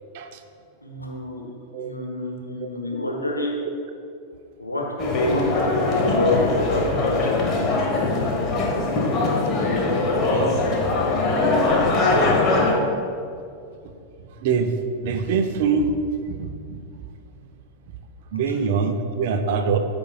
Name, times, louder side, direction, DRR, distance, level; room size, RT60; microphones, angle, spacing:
voice 1, 0.8-1.5 1.8-3.6 4.6-4.8 5.3-7.2, left 2 dB, 85° left, -1 dB, 1.1 m, -28 dB
voice 2, 3.3-3.7 10.3-10.9 11.5-11.6 12.5-12.6 14.4-14.7 15.0-16.0 16.3-16.8 18.3-19.8, right 5 dB, 50° right, 6 dB, 0.6 m, -24 dB
sound 1, 5.0-12.7, left 3 dB, 30° left, 1.2 m, -21 dB
13.5 x 5.3 x 2.4 m, 2.4 s
figure-of-eight pair, 90°, 0 cm